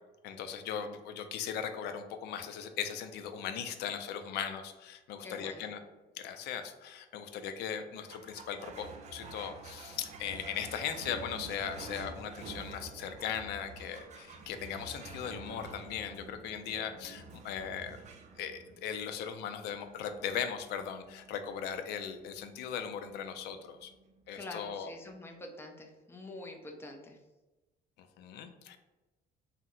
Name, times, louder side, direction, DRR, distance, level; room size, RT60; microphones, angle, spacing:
voice 1, 0.2-5.8 6.2-18.0 18.4-23.9 24.3-24.9 28.0-28.8, left 8 dB, 80° left, 8 dB, 0.4 m, -38 dB
voice 2, 5.2-5.7 24.3-27.2, left 2 dB, 15° left, 2 dB, 0.5 m, -46 dB
sound 1, 8.1-24.8, right 3 dB, 45° right, 0.4 m, -49 dB
2.7 x 2.1 x 3.7 m, 1.1 s
cardioid pair, 110°, 17 cm